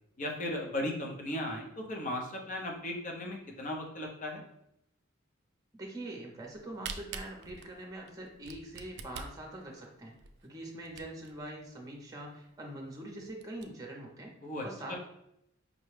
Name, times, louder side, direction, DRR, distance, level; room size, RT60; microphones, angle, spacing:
voice 1, 0.2-4.4 14.4-15.0, left 1 dB, 40° left, 1 dB, 0.7 m, -36 dB
voice 2, 5.7-10.1 10.4-14.3 14.6-15.0, right 1 dB, 20° right, 0 dB, 0.7 m, -43 dB
Camera, 6.4-11.4 11.9-12.0 12.2-12.3 12.8-12.9 13.3-13.6, right 6 dB, 60° right, 0.4 m, -45 dB
5.1 x 2.3 x 3.2 m, 0.78 s
head